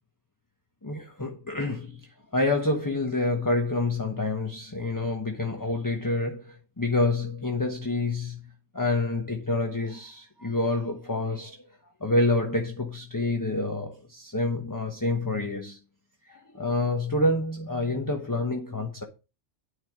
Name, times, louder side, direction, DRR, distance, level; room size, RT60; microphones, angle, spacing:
voice 1, 0.8-8.5 8.7-11.7 12.0-15.8 16.3-19.0, left 2 dB, 15° left, 1.2 m, -28 dB
9.7 x 5.7 x 6.0 m
omnidirectional pair, 1.3 m